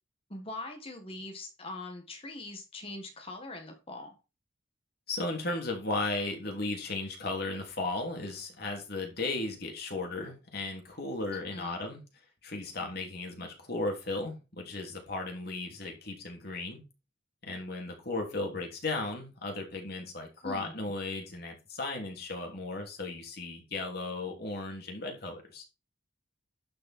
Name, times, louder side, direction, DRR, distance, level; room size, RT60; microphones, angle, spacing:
voice 1, 0.3-4.1 11.5-11.8 20.4-20.8, left 2 dB, 30° left, 1.8 m, -42 dB
voice 2, 5.1-12.0 12.4-16.8 17.4-25.6, left 2 dB, 50° left, 3.1 m, -35 dB
12.0 x 5.6 x 4.5 m
head